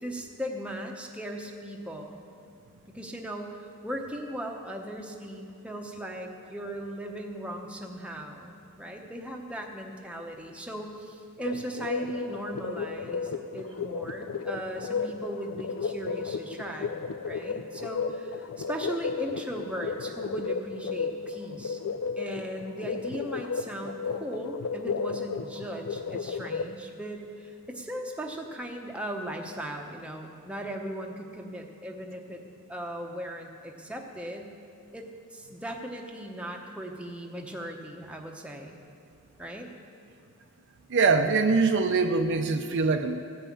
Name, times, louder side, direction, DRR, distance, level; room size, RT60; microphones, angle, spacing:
voice 1, 0.0-2.2 2.9-21.8 22.2-32.4 32.7-34.5 34.9-38.8 39.4-39.7, equal, 5° right, 1 dB, 0.8 m, -38 dB
sound 1, 11.4-26.7, left 5 dB, 65° left, 0.4 m, -34 dB
voice 2, 40.9-43.2, right 4 dB, 55° right, 6 dB, 0.5 m, -23 dB
14.5 x 5.6 x 8.4 m, 2.4 s
head